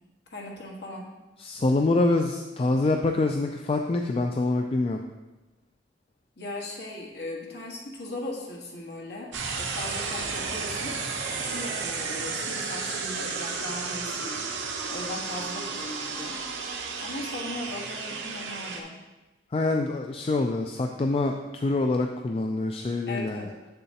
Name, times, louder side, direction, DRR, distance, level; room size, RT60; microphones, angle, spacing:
voice 1, 0.3-1.1 6.4-14.4 14.9-16.4 17.0-19.0 23.1-23.5, left 1 dB, 65° left, -1 dB, 1.4 m, -38 dB
voice 2, 1.4-5.0 19.5-23.5, left 2 dB, 30° left, 3 dB, 0.3 m, -25 dB
sound 1, 9.3-18.8, right 4 dB, 90° right, 0.8 m, -33 dB
7.5 x 6.9 x 2.8 m, 1.1 s
head